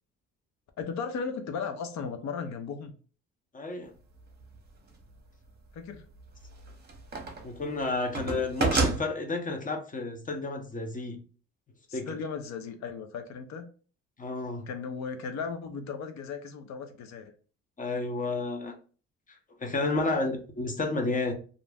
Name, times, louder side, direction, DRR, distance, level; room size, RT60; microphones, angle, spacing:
voice 1, 0.8-2.9 5.7-6.0 11.9-13.7 14.7-17.3 19.9-20.2, left 5 dB, 65° left, 0.6 m, -36 dB
voice 2, 3.5-3.9 7.4-11.2 11.9-12.1 14.2-14.7 17.8-18.7 19.6-21.3, left 3 dB, 25° left, 0.7 m, -31 dB
sound 1, 4.4-4.5 6.2-7.5 7.8-9.0, right 3 dB, 35° right, 0.8 m, -28 dB
2.5 x 2.0 x 3.4 m
cardioid pair, 90°, 30 cm